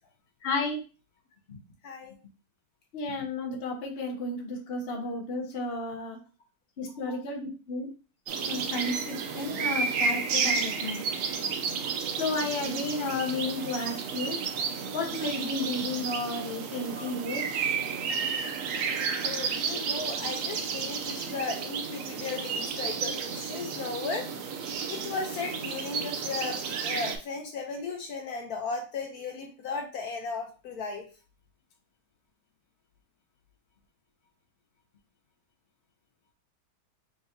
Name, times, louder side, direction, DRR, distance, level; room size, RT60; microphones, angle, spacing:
voice 1, 0.4-0.8 1.5-1.6 2.9-6.2 6.8-7.9 8.4-11.0 12.2-14.4 14.9-17.4, left 2 dB, 45° left, 2 dB, 0.9 m, -32 dB
voice 2, 1.8-2.2 7.1-7.2 11.5-11.6 14.6-14.7 16.9-17.1 19.2-24.3 24.9-31.0, left 4 dB, 70° left, 2 dB, 1.1 m, -36 dB
sound 1, 8.3-27.2, right 5 dB, 65° right, 0.8 m, -32 dB
3.8 x 3.7 x 2.7 m, 0.35 s
omnidirectional pair, 1.8 m